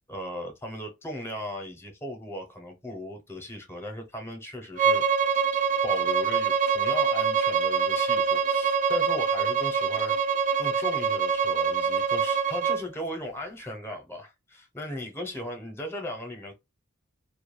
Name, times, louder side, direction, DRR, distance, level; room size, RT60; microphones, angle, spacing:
voice 1, 0.1-5.0 5.8-10.3 10.6-16.5, left 1 dB, 10° left, 0.6 m, -37 dB
Bowed string instrument, 4.8-12.8, right 6 dB, 40° right, 0.3 m, -25 dB
2.2 x 2.1 x 3.0 m
head